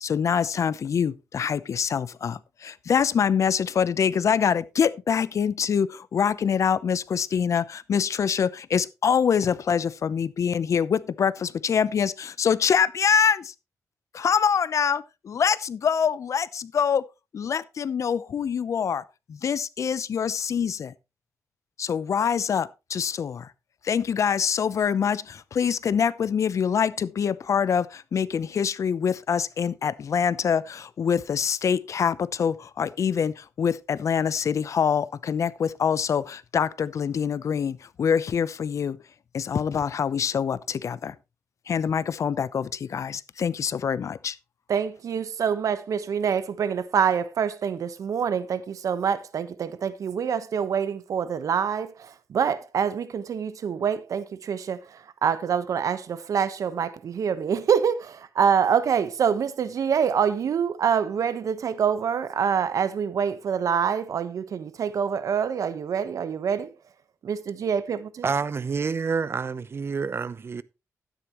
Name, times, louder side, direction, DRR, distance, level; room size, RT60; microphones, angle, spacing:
voice 1, 0.0-13.5 14.1-17.0 17.3-19.0 19.3-20.9 21.8-23.5 23.8-39.0 39.3-41.1 41.7-44.4, left 7 dB, 60° left, 0.7 m, -25 dB
voice 2, 44.7-66.7 67.2-68.3, right 7 dB, 70° right, 1.1 m, -26 dB
voice 3, 68.2-70.6, right 5 dB, 45° right, 0.7 m, -28 dB
12.5 x 10.0 x 3.1 m
cardioid pair, 95°, 6 cm